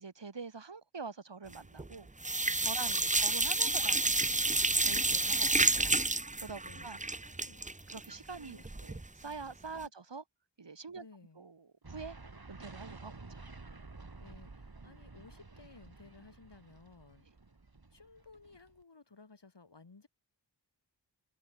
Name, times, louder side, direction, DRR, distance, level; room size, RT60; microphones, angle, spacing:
voice 1, 0.0-2.1 2.6-4.4 4.8-6.0 6.4-7.0 7.9-10.2 10.6-11.1 11.4-12.2 12.5-13.5, right 4 dB, 75° right, 3.8 m, -45 dB
sound 1, 1.5-1.9 2.2-9.1 9.4-9.5 9.8-9.9, right 2 dB, 15° right, 1.0 m, -30 dB
voice 2, 2.8-3.2 6.6-7.7 8.4-8.9 9.8-9.9 10.9-11.4 14.2-17.3 17.9-20.1, left 4 dB, 70° left, 7.5 m, -57 dB
sound 2, 11.8-18.8, right 3 dB, 55° right, 7.2 m, -51 dB
wide cardioid pair, 45°, 43 cm